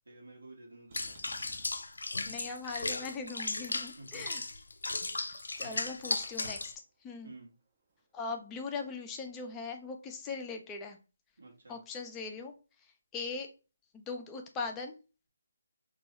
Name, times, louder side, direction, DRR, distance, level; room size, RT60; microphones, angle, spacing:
voice 1, 0.1-1.2 4.0-4.2 5.6-5.9 7.2-7.5 11.4-11.8, right 2 dB, 75° right, -1 dB, 1.0 m, -52 dB
Water / Bathtub (filling or washing), 0.9-6.7, left 2 dB, 75° left, 0.4 m, -36 dB
Motor vehicle (road), 0.9-2.0 2.8-4.4 4.7-5.0 5.3-5.4 5.7-6.8 7.9-8.0, right 4 dB, 35° right, 0.6 m, -56 dB
voice 2, 2.3-4.4 5.6-6.7 7.0-7.3 8.1-11.0 11.7-13.5 13.9-15.0, left 4 dB, 15° left, 4 dB, 0.5 m, -40 dB
3.0 x 2.3 x 2.8 m, 0.33 s
figure-of-eight pair, 150°, 0 cm